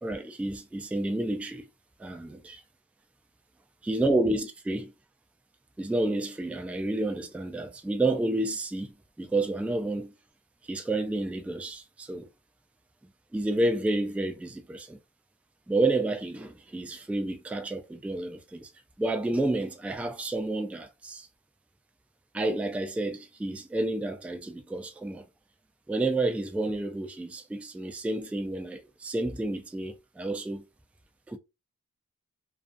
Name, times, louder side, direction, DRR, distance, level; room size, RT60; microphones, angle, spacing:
voice 1, 0.0-1.6 2.0-2.6 3.8-4.9 5.8-8.9 9.2-10.1 10.7-12.3 13.3-15.0 15.7-18.7 19.0-21.3 22.3-25.2 25.9-30.6 31.3-31.4, right 2 dB, 5° right, 0.4 m, -30 dB
2.4 x 2.4 x 2.5 m
cardioid pair, 50°, 35 cm